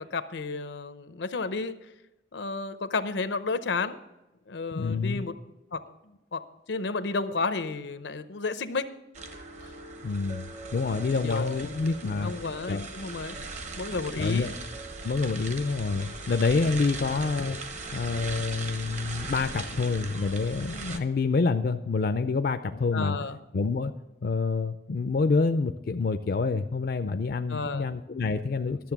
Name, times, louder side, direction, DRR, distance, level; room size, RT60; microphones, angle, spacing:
voice 1, 0.0-1.8 2.3-4.0 4.5-5.3 5.7-5.8 6.3-6.4 6.7-8.9 11.2-11.9 12.2-13.4 13.8-14.5 17.0-17.2 22.9-23.4 27.5-27.9, left 4 dB, 85° left, 12 dB, 0.7 m, -32 dB
voice 2, 4.7-5.3 10.0-12.3 12.7-12.9 14.2-14.5 15.0-17.6 17.9-23.2 23.5-23.9 24.2-28.9, left 4 dB, 55° left, 8 dB, 0.4 m, -27 dB
sound 1, 9.1-21.0, right 3 dB, 40° right, 0.9 m, -39 dB
12.0 x 7.3 x 5.9 m, 0.97 s
head